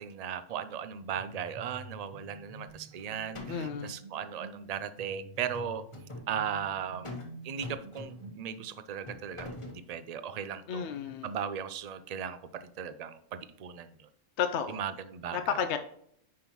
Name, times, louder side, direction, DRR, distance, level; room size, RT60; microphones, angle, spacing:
voice 1, 0.0-5.8 6.3-10.9 11.2-13.9 14.7-15.4, right 8 dB, 55° right, 12 dB, 0.4 m, -37 dB
sound 1, 1.1-8.8, right 2 dB, 35° right, 1.5 m, -49 dB
sound 2, 2.7-3.0 3.3-3.9 5.4-6.3 7.0-7.3 7.6-8.4 9.1-9.8, left 2 dB, 25° left, 1.1 m, -43 dB
voice 2, 3.5-3.9 10.7-11.3 14.4-14.8 15.3-15.8, left 8 dB, 70° left, 8 dB, 0.8 m, -32 dB
9.6 x 5.4 x 3.0 m, 0.69 s
omnidirectional pair, 1.3 m